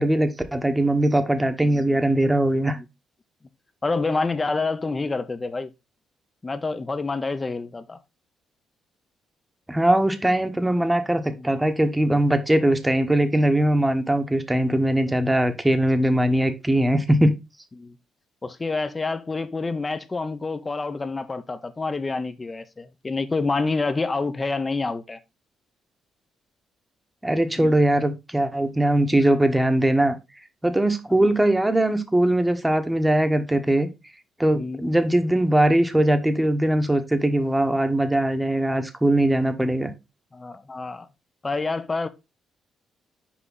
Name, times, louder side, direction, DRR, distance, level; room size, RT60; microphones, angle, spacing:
voice 1, 0.0-2.8 9.7-17.3 27.2-30.2 30.6-33.9 34.4-39.9, right 1 dB, 10° right, 1.1 m, -21 dB
voice 2, 3.8-5.7 6.4-8.0 11.3-11.5 14.0-14.1 17.8-18.0 18.4-25.2 27.6-27.8 31.1-31.3 34.5-34.8 40.3-41.1 41.4-42.1, left 3 dB, 25° left, 0.8 m, -28 dB
6.1 x 4.9 x 3.9 m
cardioid pair, 90°, 0 cm